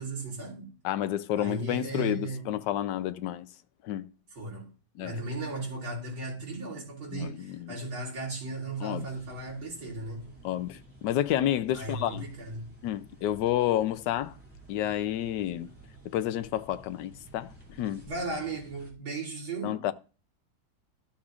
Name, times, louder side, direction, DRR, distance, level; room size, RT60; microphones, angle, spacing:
voice 1, 0.0-0.7 1.4-2.5 4.3-4.7 5.0-10.3 11.7-12.7 18.0-19.8, right 3 dB, 90° right, 4.1 m, -36 dB
voice 2, 0.8-3.5 3.8-4.1 5.0-5.2 7.1-7.8 8.8-9.1 10.4-12.3 12.8-14.4 14.7-15.7 16.1-17.5 17.8-18.1 19.6-19.9, left 12 dB, 70° left, 1.1 m, -30 dB
sound 1, 9.0-18.9, right 1 dB, 5° right, 2.3 m, -53 dB
13.0 x 7.2 x 2.5 m
omnidirectional pair, 2.2 m